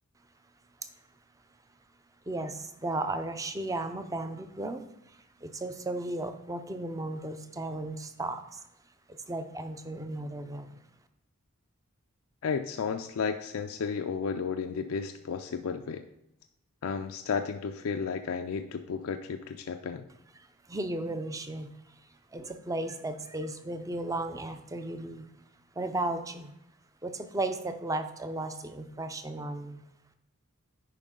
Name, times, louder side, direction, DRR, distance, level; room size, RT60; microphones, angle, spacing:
voice 1, 2.3-8.6 9.1-10.8 20.4-25.3 25.7-26.5 27.0-29.8, right 2 dB, 15° right, 8 dB, 0.5 m, -35 dB
voice 2, 12.4-16.0 16.8-20.0, left 5 dB, 65° left, 6 dB, 0.4 m, -33 dB
9.1 x 5.3 x 3.8 m, 0.82 s
head